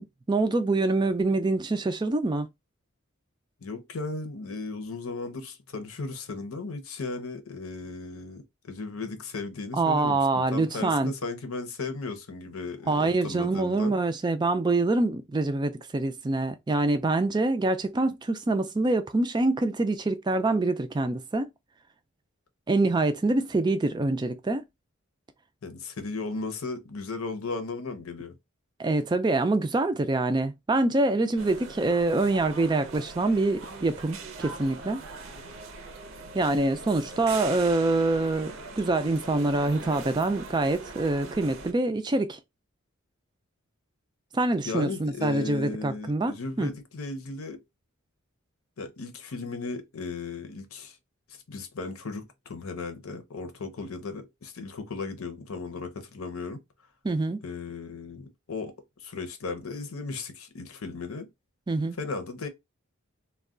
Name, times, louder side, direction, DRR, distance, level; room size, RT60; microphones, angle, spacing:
voice 1, 0.0-2.5 9.7-11.1 12.9-21.5 22.7-24.6 28.8-35.0 36.3-42.4 44.3-46.7 57.0-57.4 61.7-62.0, right 2 dB, 20° right, 0.3 m, -25 dB
voice 2, 3.6-14.0 25.6-28.3 44.6-47.6 48.8-51.0 51.5-56.6 57.4-61.3 62.0-62.5, left 3 dB, 80° left, 0.7 m, -36 dB
sound 1, 31.4-41.7, right 3 dB, 65° right, 0.6 m, -41 dB
2.3 x 2.2 x 3.6 m
head